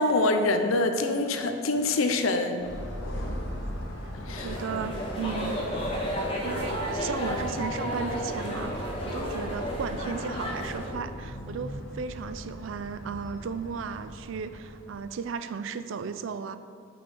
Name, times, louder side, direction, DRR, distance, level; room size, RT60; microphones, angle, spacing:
voice 1, 0.0-2.6 4.3-4.5, left 2 dB, 85° left, 6 dB, 0.6 m, -25 dB
sound 1, 2.6-15.1, equal, 65° left, 1.1 m, -39 dB
voice 2, 3.1-3.6 4.4-5.6 6.4-16.6, right 5 dB, 70° right, 11 dB, 0.4 m, -35 dB
sound 2, 4.3-10.9, equal, 25° left, 1.3 m, -32 dB
5.5 x 5.4 x 5.5 m, 2.3 s
head